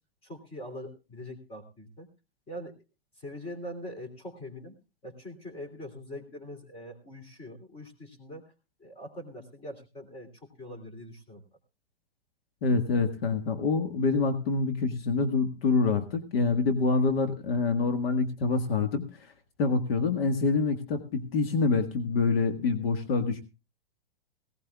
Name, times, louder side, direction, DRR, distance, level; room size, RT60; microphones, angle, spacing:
voice 1, 0.2-2.1 2.5-2.7 3.2-4.8 5.0-8.4 8.8-11.4, equal, 20° left, 5 dB, 3.2 m, -43 dB
voice 2, 12.6-19.0 19.6-23.4, left 4 dB, 70° left, 7 dB, 1.7 m, -26 dB
18.0 x 17.0 x 2.3 m, 0.28 s
hypercardioid pair, 140°, 31 cm